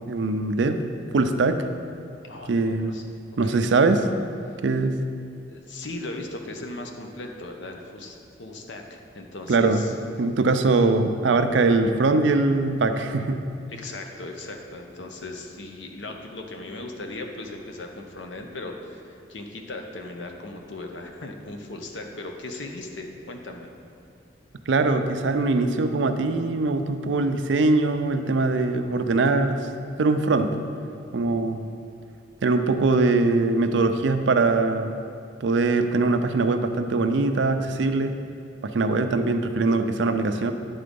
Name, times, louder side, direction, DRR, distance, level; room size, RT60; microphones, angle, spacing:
voice 1, 0.1-0.8 1.1-1.6 2.5-3.0 3.4-4.1 4.6-5.0 9.5-13.4 24.7-29.7 30.0-30.5 31.1-31.7 32.4-34.9 35.4-38.2 38.6-40.5, right 3 dB, 75° right, 7 dB, 0.5 m, -22 dB
voice 2, 2.2-3.1 3.4-3.6 5.5-9.9 13.7-23.7, left 2 dB, 80° left, 3 dB, 0.8 m, -38 dB
9.6 x 3.8 x 5.2 m, 2.4 s
head